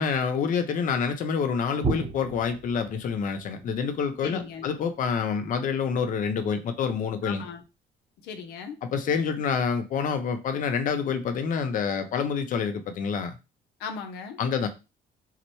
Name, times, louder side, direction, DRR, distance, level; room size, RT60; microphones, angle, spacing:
voice 1, 0.0-7.4 8.8-13.4 14.4-14.7, left 6 dB, 50° left, 0.7 m, -27 dB
sound 1, 1.4-7.0 9.1-9.6 10.1-10.2 11.0-11.3, right 3 dB, 35° right, 0.9 m, -37 dB
voice 2, 4.2-4.7 7.2-7.6 8.2-8.8 13.8-14.4, left 6 dB, 85° left, 0.7 m, -37 dB
5.8 x 2.2 x 3.0 m
cardioid pair, 110°, 17 cm